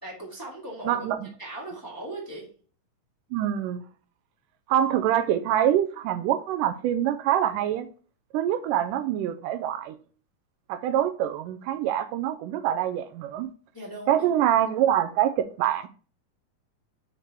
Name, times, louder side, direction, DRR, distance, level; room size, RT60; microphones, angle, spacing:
voice 1, 0.0-1.1 1.4-2.5 13.7-14.3, right 1 dB, 10° left, 1.7 m, -38 dB
voice 2, 0.9-1.3 3.3-3.8 4.7-7.9 8.3-10.0 10.7-13.5 14.1-15.9, right 11 dB, 80° right, 2.1 m, -25 dB
6.6 x 4.4 x 4.5 m
omnidirectional pair, 3.8 m